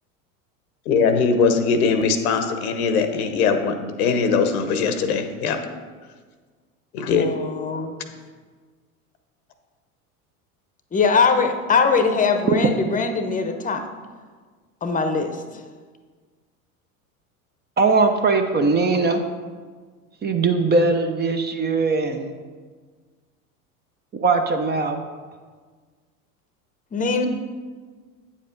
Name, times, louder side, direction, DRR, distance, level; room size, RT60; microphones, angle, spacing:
voice 1, 0.9-5.6 6.9-7.3, left 5 dB, 75° left, 8 dB, 1.0 m, -21 dB
voice 2, 7.2-7.9 10.9-13.8 14.8-15.6 26.9-27.3, left 5 dB, 20° left, 7 dB, 0.9 m, -21 dB
voice 3, 17.8-19.2 20.2-22.3 24.1-25.0, right 3 dB, 25° right, 6 dB, 0.7 m, -20 dB
8.6 x 7.3 x 3.9 m, 1.5 s
hypercardioid pair, 85°, 44 cm